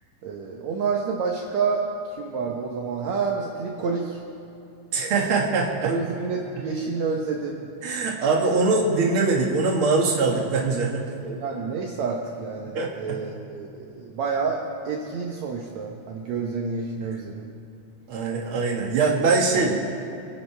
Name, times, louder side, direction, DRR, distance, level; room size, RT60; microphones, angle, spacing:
voice 1, 0.2-1.8 2.2-4.2 5.8-7.7 11.3-14.6 14.9-17.4, right 5 dB, 70° right, 0 dB, 2.2 m, -28 dB
voice 2, 4.9-5.9 7.8-11.0 12.7-13.2 18.1-19.8, right 3 dB, 45° right, -2 dB, 2.4 m, -22 dB
28.5 x 10.5 x 3.4 m, 2.9 s
omnidirectional pair, 3.6 m